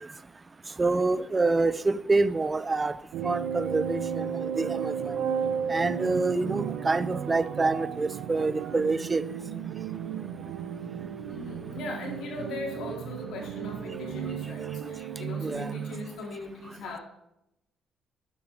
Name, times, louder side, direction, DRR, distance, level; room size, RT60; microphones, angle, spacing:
voice 1, 0.8-2.9 3.2-5.2 5.7-9.2 15.4-15.7, right 3 dB, 25° right, 16 dB, 0.7 m, -26 dB
sound 1, 3.1-16.1, right 8 dB, 85° right, 1.0 m, -34 dB
voice 2, 11.3-17.0, left 2 dB, 80° left, 0 dB, 4.3 m, -39 dB
12.0 x 9.2 x 4.9 m, 0.82 s
cardioid pair, 90°, 0 cm